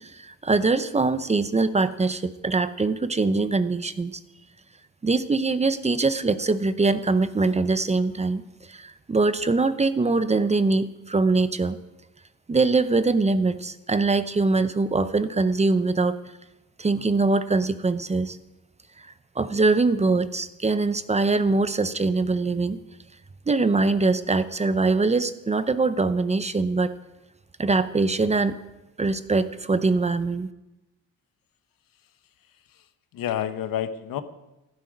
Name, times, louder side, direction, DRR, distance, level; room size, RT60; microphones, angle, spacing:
voice 1, 0.0-4.2 5.0-8.4 8.7-11.8 12.5-16.2 16.8-18.4 19.0-22.8 23.5-26.9 27.6-28.6 29.0-30.5, right 3 dB, 20° right, 13 dB, 0.6 m, -23 dB
voice 2, 32.5-34.2, left 10 dB, 75° left, 10 dB, 1.1 m, -30 dB
15.0 x 12.5 x 5.2 m, 0.97 s
cardioid pair, 120°, 34 cm